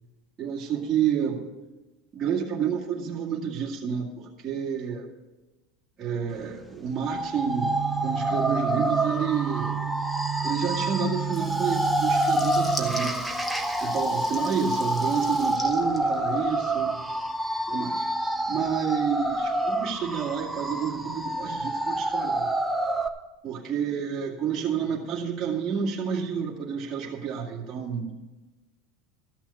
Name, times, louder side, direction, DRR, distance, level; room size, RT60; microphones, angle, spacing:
voice 1, 0.4-1.4 2.1-5.1 6.0-7.7 8.0-9.7 10.4-13.3 13.8-17.0 17.7-18.0 18.5-22.5 23.4-28.1, right 7 dB, 30° right, -5 dB, 2.2 m, -29 dB
sound 1, 7.0-23.1, right 1 dB, ahead, 0.9 m, -28 dB
sound 2, 7.5-13.0, right 14 dB, 85° right, 0.5 m, -33 dB
Water tap faucet / Liquid, 11.2-16.7, left 1 dB, 15° left, 1.2 m, -40 dB
14.0 x 6.1 x 8.4 m, 1.1 s
supercardioid pair, 125°, 0 cm